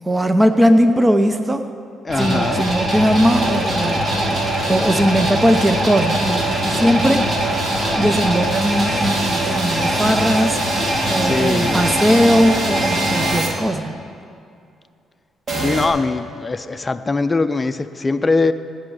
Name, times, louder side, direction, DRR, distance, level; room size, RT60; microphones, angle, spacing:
voice 1, 0.0-1.6 2.2-7.3 7.9-10.8 11.1-14.0, equal, 15° right, 8 dB, 0.8 m, -18 dB
voice 2, 2.0-2.6 11.2-11.9 15.5-18.5, left 3 dB, 25° left, 10 dB, 0.6 m, -21 dB
sound 1, 2.1-13.5 15.5-15.9, right 1 dB, 50° right, 2.6 m, -21 dB
Engine, 2.9-7.9, right 1 dB, 75° right, 3.0 m, -35 dB
17.0 x 6.3 x 8.1 m, 2.4 s
cardioid pair, 90°, 0 cm